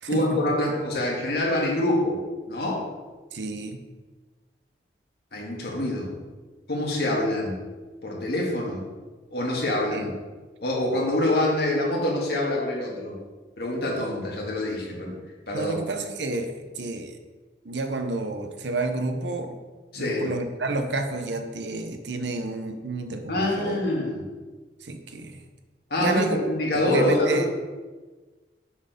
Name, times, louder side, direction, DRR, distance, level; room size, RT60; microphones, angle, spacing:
voice 1, 0.1-2.2 2.5-2.8 5.3-6.1 6.7-7.6 8.0-8.8 9.3-10.1 10.6-13.2 13.6-15.1 15.5-15.8 19.9-20.3 23.3-24.2 25.9-27.5, left 1 dB, 60° left, -2 dB, 1.8 m, -25 dB
voice 2, 3.3-3.8 9.9-10.1 15.5-17.2 17.6-19.6 20.0-23.7 24.8-25.4 26.0-26.4 26.7-27.5, right 2 dB, 80° right, 6 dB, 0.8 m, -30 dB
7.1 x 4.5 x 5.2 m, 1.3 s
head